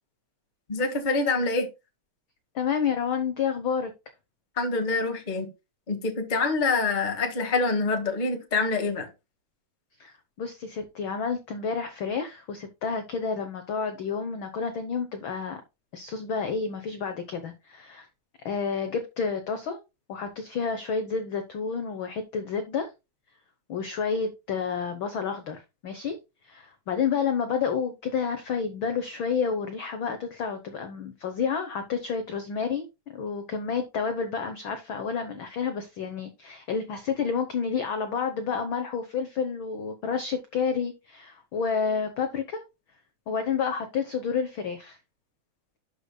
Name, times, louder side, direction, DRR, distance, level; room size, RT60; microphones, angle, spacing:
voice 1, 0.7-1.7 4.6-5.5 5.9-9.1, left 3 dB, 25° left, 1.2 m, -26 dB
voice 2, 2.5-3.9 10.0-15.6 15.9-18.1 18.4-19.8 20.1-22.9 23.7-26.2 26.4-42.6 43.3-45.0, left 6 dB, 60° left, 1.3 m, -30 dB
11.5 x 6.7 x 2.2 m
omnidirectional pair, 3.3 m